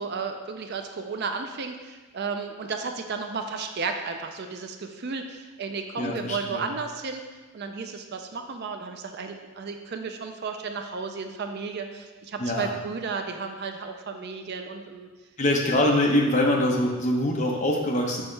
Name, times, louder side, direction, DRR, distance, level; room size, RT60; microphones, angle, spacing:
voice 1, 0.0-7.2 7.5-15.1, right 4 dB, 45° right, 5 dB, 0.4 m, -33 dB
voice 2, 6.0-6.6 12.4-12.7 15.4-18.2, left 1 dB, 30° left, 0 dB, 0.8 m, -24 dB
6.2 x 5.7 x 3.3 m, 1.3 s
head